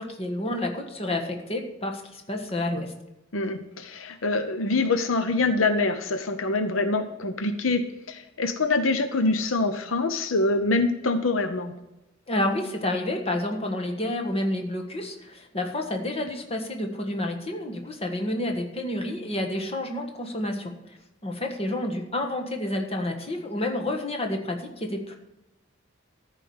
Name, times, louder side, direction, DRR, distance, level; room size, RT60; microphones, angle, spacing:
voice 1, 0.0-2.9 12.3-20.7 21.2-25.1, left 1 dB, 30° left, 3 dB, 1.6 m, -29 dB
voice 2, 3.3-11.7, left 3 dB, 85° left, 9 dB, 0.9 m, -25 dB
14.0 x 5.1 x 7.9 m, 0.94 s
head